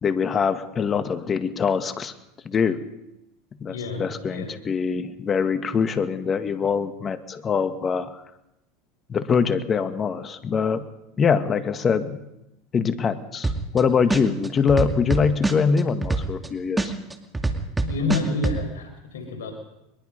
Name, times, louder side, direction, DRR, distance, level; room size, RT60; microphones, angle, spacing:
voice 1, 0.0-2.1 2.5-2.8 3.6-8.2 9.1-10.9 11.2-12.2 12.7-16.9, left 6 dB, 30° left, 10 dB, 1.9 m, -23 dB
voice 2, 3.6-4.5 17.8-19.5, left 3 dB, 85° left, 4 dB, 4.9 m, -29 dB
hip hop drum beat, 13.4-13.8 14.1-16.5 16.8-18.6, right 3 dB, 10° right, 2.4 m, -24 dB
22.5 x 21.5 x 5.4 m, 0.88 s
hypercardioid pair, 95°, 0 cm